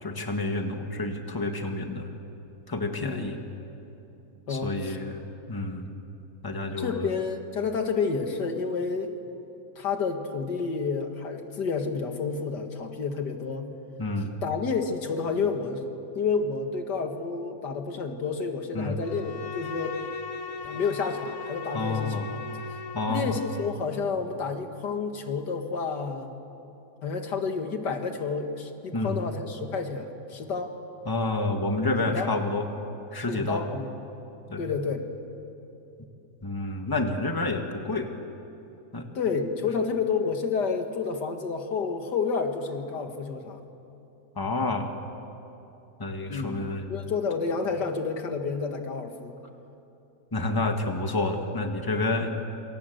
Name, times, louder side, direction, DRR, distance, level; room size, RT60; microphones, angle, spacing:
voice 1, 0.0-2.1 2.7-3.4 4.5-5.2 5.5-5.9 6.4-7.1 14.0-14.3 18.7-19.0 21.7-22.3 22.9-23.4 28.9-29.2 31.0-32.7 33.1-33.7 34.5-34.7 36.4-38.1 38.9-39.1 44.3-44.9 46.0-46.9 50.3-52.4, left 2 dB, 15° left, 4 dB, 1.7 m, -29 dB
voice 2, 3.0-3.3 4.5-5.0 6.8-9.1 9.8-13.7 14.4-15.8 16.2-20.0 20.6-22.2 23.1-26.3 27.0-30.8 32.0-32.3 33.3-33.9 34.6-35.0 39.1-43.6 46.3-46.5 46.9-49.4, left 5 dB, 90° left, 5 dB, 2.4 m, -30 dB
Bowed string instrument, 19.0-23.8, left 5 dB, 55° left, 1.6 m, -38 dB
27.5 x 25.0 x 8.0 m, 2.9 s
omnidirectional pair, 1.8 m